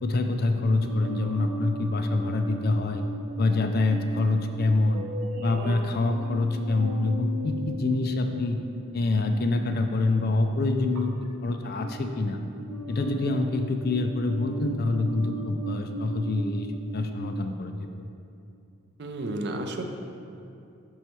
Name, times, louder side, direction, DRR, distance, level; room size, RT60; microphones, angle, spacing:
voice 1, 0.0-3.0 3.4-5.0 5.4-8.6 8.9-12.4 12.9-16.7 16.9-17.7, left 2 dB, 45° left, 6 dB, 0.4 m, -26 dB
sound 1, 0.8-10.2 10.9-11.3 11.6-17.3, right 1 dB, 85° right, 0.7 m, -37 dB
voice 2, 19.0-19.8, right 1 dB, 50° right, 4 dB, 0.5 m, -32 dB
6.3 x 4.7 x 4.3 m, 2.6 s
head